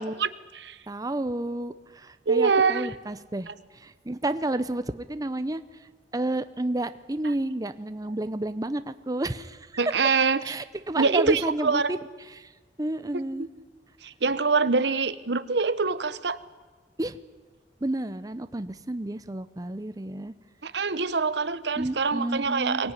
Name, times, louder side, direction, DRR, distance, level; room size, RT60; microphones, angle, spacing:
voice 1, 0.0-0.8 2.3-2.9 3.5-3.6 9.8-10.4 11.0-11.9 13.4-13.5 14.0-16.4 20.6-22.9, right 4 dB, 80° right, 14 dB, 1.0 m, -25 dB
voice 2, 0.9-9.8 10.4-12.5 12.8-13.5 17.0-17.2 17.8-20.3 21.8-22.8, right 1 dB, 20° right, 12 dB, 0.7 m, -31 dB
23.5 x 18.0 x 9.8 m, 1.3 s
head